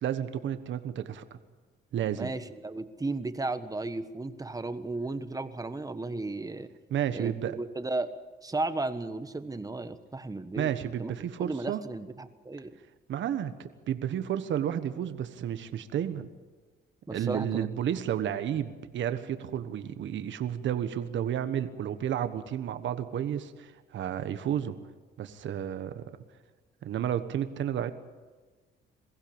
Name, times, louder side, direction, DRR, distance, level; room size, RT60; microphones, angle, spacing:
voice 1, 0.0-1.2 1.9-2.3 6.9-7.6 10.6-11.8 13.1-16.3 17.1-24.7 25.2-26.0 26.8-27.9, right 10 dB, 70° right, 10 dB, 1.3 m, -31 dB
voice 2, 2.1-6.7 7.1-8.1 8.4-10.7 11.0-11.1 11.4-12.7 17.1-17.7, right 2 dB, 20° right, 10 dB, 1.4 m, -34 dB
22.5 x 15.5 x 8.9 m, 1.4 s
cardioid pair, 90°, 20 cm